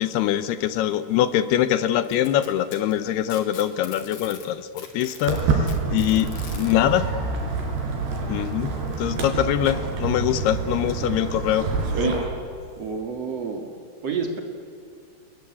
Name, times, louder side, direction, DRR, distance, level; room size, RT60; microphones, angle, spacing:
voice 1, 0.0-7.1 8.3-11.7 12.0-12.1, left 11 dB, 75° left, 13 dB, 2.6 m, -23 dB
Packing tape duct tape, 2.0-4.5 4.8-6.7 7.8-7.9 8.5-8.6 9.4-9.5, left 6 dB, 55° left, 4.3 m, -42 dB
Walk footsteps, 5.3-12.2, right 4 dB, 70° right, 6.0 m, -27 dB
voice 2, 12.8-13.7 14.0-14.4, right 5 dB, 45° right, 4 dB, 2.8 m, -29 dB
29.5 x 22.0 x 8.4 m, 2.4 s
omnidirectional pair, 5.0 m